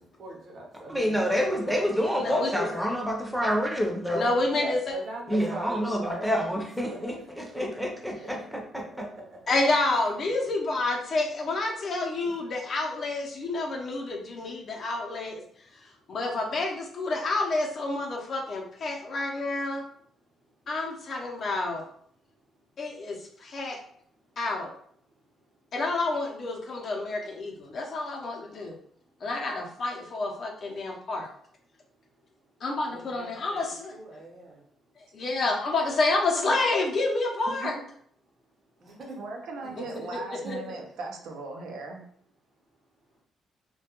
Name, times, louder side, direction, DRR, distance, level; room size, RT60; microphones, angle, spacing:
voice 1, 0.2-1.8 2.2-2.7 4.0-7.1 7.5-7.7 8.2-9.4 12.2-12.3 32.9-33.6 33.9-34.6 36.3-36.5 38.8-39.2 40.4-40.6, right 1 dB, 55° right, -1 dB, 0.8 m, -41 dB
voice 2, 0.9-4.3 5.3-8.8, equal, ahead, 0 dB, 0.6 m, -28 dB
voice 3, 2.2-2.7 4.1-4.8 9.5-15.4 15.7-19.8 20.7-21.8 22.8-23.8 24.4-24.7 25.7-28.8 29.2-31.3 32.6-33.9 35.0-37.8 39.8-39.9 40.5-40.6, left 2 dB, 55° left, 0 dB, 0.6 m, -29 dB
voice 4, 37.5-37.8 39.2-42.0, right 3 dB, 85° right, 1 dB, 0.5 m, -38 dB
2.2 x 2.2 x 2.9 m, 0.62 s
cardioid pair, 90°, 0 cm